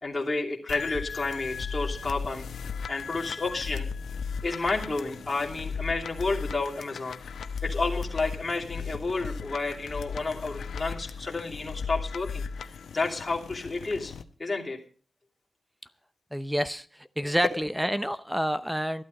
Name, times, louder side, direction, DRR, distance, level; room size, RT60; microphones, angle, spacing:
voice 1, 0.0-2.4 2.9-3.9 4.4-7.2 7.6-12.4 12.9-14.1 14.4-14.8 17.2-17.5, left 3 dB, 25° left, -2 dB, 2.9 m, -31 dB
sound 1, 0.7-14.2, left 5 dB, 85° left, 1.0 m, -36 dB
voice 2, 16.3-19.0, equal, 5° right, 13 dB, 0.7 m, -28 dB
14.0 x 12.0 x 5.4 m, 0.42 s
wide cardioid pair, 135°, 0 cm